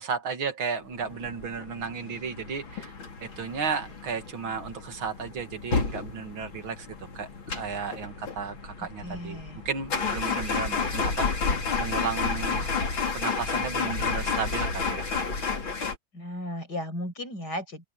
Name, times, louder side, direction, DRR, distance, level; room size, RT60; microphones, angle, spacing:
voice 1, 0.0-2.9 3.2-6.9 7.1-7.3 7.5-12.7 13.1-15.1, right 6 dB, 90° right, 2.9 m, -34 dB
sound 1, 1.0-16.0, left 5 dB, 80° left, 4.1 m, -31 dB
voice 2, 8.8-9.6 16.1-17.9, left 1 dB, 55° left, 8.3 m, -35 dB
open air
omnidirectional pair, 2.1 m